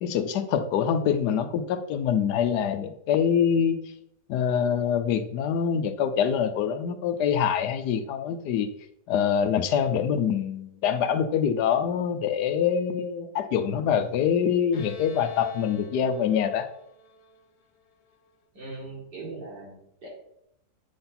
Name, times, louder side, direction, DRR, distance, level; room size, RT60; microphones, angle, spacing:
voice 1, 0.0-3.8 4.3-8.7 9.1-16.7, left 8 dB, 80° left, 10 dB, 1.2 m, -25 dB
Bowed string instrument, 14.7-18.3, left 4 dB, 55° left, 0.7 m, -46 dB
voice 2, 18.5-20.1, right 3 dB, 85° right, -3 dB, 2.8 m, -40 dB
8.6 x 4.2 x 3.9 m, 0.78 s
omnidirectional pair, 1.8 m